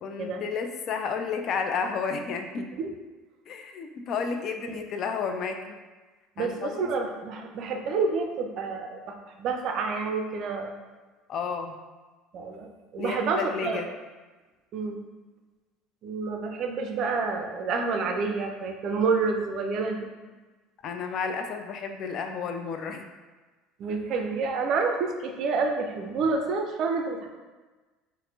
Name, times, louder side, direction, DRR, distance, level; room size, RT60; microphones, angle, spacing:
voice 1, 0.0-2.7 3.5-5.8 6.4-6.9 11.3-11.7 13.0-13.9 20.8-23.1, left 5 dB, 50° left, 6 dB, 0.3 m, -32 dB
voice 2, 6.4-10.7 12.3-13.8 14.7-15.0 16.0-20.1 23.8-27.3, right 4 dB, 50° right, 4 dB, 0.4 m, -28 dB
4.0 x 2.0 x 2.7 m, 1.3 s
hypercardioid pair, 65°, 0 cm